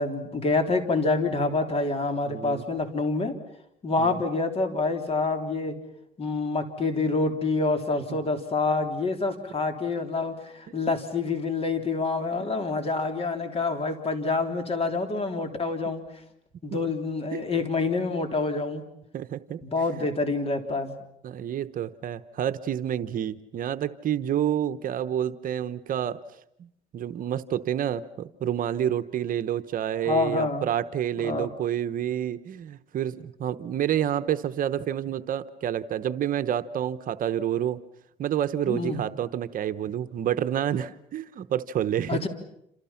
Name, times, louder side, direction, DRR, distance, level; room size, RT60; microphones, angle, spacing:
voice 1, 0.0-3.3 3.8-5.7 6.2-16.0 16.6-18.8 19.6-21.0 30.1-30.7 31.2-31.5 38.6-39.0 42.1-42.3, left 3 dB, 35° left, 6 dB, 3.6 m, -27 dB
voice 2, 2.2-2.6 4.0-4.2 16.7-16.8 17.3-17.4 19.1-19.6 21.2-26.2 26.6-26.7 26.9-37.8 38.2-42.2, right 10 dB, 55° right, 12 dB, 1.0 m, -28 dB
28.0 x 28.0 x 5.9 m, 0.76 s
cardioid pair, 110°, 17 cm